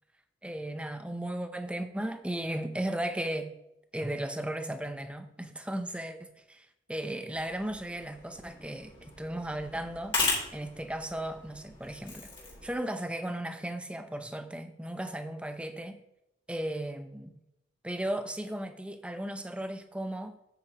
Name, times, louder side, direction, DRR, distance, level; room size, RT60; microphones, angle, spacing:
voice 1, 0.4-3.5 3.9-10.2 10.5-12.3 12.6-16.0 16.5-17.3 17.8-20.4, right 1 dB, 5° right, 0.6 m, -36 dB
sound 1, 7.3-12.7, left 3 dB, 25° left, 3.2 m, -37 dB
9.4 x 8.8 x 2.9 m
head